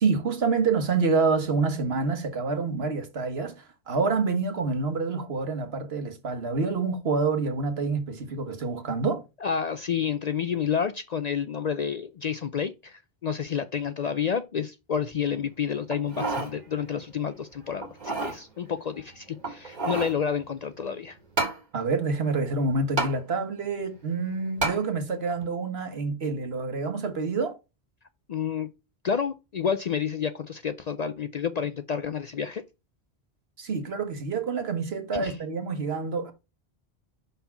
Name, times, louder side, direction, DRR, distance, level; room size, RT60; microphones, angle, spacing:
voice 1, 0.0-9.2 21.7-27.6 33.6-36.3, right 4 dB, 70° right, 1.5 m, -27 dB
voice 2, 9.4-21.2 28.3-28.7 29.0-32.6 35.1-35.3, left 7 dB, 55° left, 0.5 m, -29 dB
sound 1, 15.9-16.5 17.0-17.1 17.8-18.4 19.4-20.2 21.4-21.6 23.0-23.1 24.6-24.8 25.4-25.5, right 3 dB, 40° right, 1.6 m, -29 dB
5.7 x 4.2 x 5.7 m
omnidirectional pair, 1.1 m